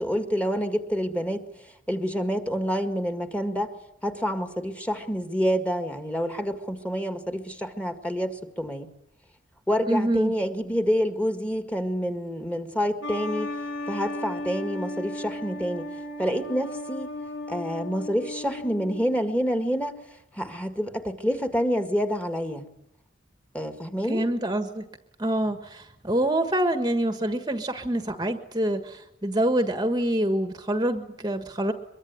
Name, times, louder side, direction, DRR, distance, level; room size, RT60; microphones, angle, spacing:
voice 1, 0.0-3.7 4.0-8.9 9.7-13.5 13.9-15.9 16.2-17.1 17.5-19.9 20.3-22.7 23.5-24.3, equal, 5° left, 7 dB, 1.9 m, -27 dB
voice 2, 9.9-10.3 24.1-24.8 25.2-31.7, right 1 dB, 20° right, 8 dB, 1.4 m, -26 dB
sound 1, 13.0-19.3, left 1 dB, 80° left, 6.8 m, -35 dB
23.5 x 23.0 x 9.6 m, 0.79 s
head